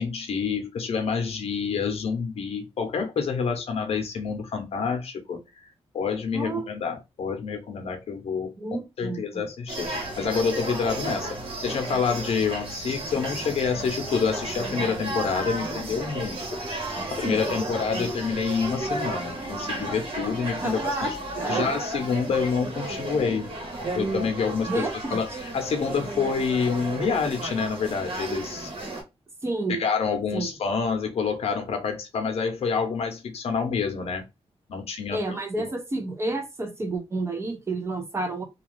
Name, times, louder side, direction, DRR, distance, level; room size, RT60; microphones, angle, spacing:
voice 1, 0.0-5.4 5.9-8.5 9.0-9.9 10.2-16.4 17.1-21.2 21.5-23.5 23.9-28.7 29.7-34.2 34.7-35.7, left 5 dB, 65° left, 0.7 m, -27 dB
voice 2, 6.3-6.7 8.6-9.5 17.0-17.4 18.0-18.1 20.6-21.7 24.7-25.2 29.4-29.8 30.3-30.5 35.1-38.4, right 2 dB, 25° right, 0.6 m, -30 dB
sound 1, 9.7-29.0, right 2 dB, 55° right, 1.2 m, -33 dB
2.4 x 2.3 x 3.2 m
wide cardioid pair, 150°, 11 cm